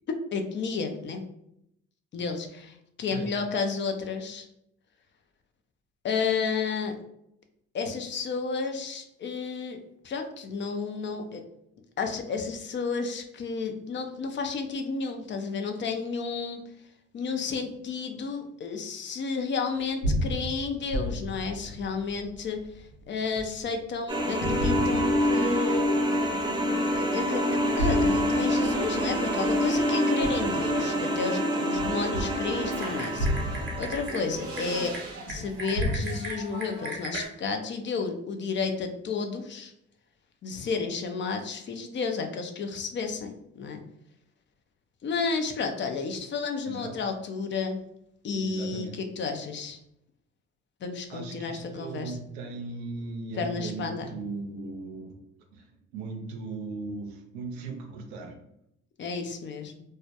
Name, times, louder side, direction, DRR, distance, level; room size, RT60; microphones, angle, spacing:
voice 1, 0.1-1.2 2.1-4.5 6.0-7.0 7.7-9.8 10.0-11.4 12.0-16.6 17.1-22.6 23.1-25.9 26.9-34.9 35.3-39.7 40.4-43.8 45.0-47.8 48.2-49.8 50.8-52.1 53.4-54.1 59.0-59.7, left 5 dB, 40° left, 5 dB, 0.4 m, -32 dB
sound 1, 19.8-23.9 24.4-25.8 26.2-26.3 27.5-31.2 31.7-36.0, equal, 90° left, 0.8 m, -33 dB
sound 2, 24.1-34.9, equal, 15° right, 0.5 m, -27 dB
Typing, 32.5-37.3, right 2 dB, 45° right, 0.8 m, -37 dB
voice 2, 48.4-49.0 51.1-55.2 55.5-58.4, right 3 dB, 90° right, 3 dB, 0.5 m, -38 dB
2.2 x 2.1 x 2.7 m, 0.78 s
hypercardioid pair, 60°, 30 cm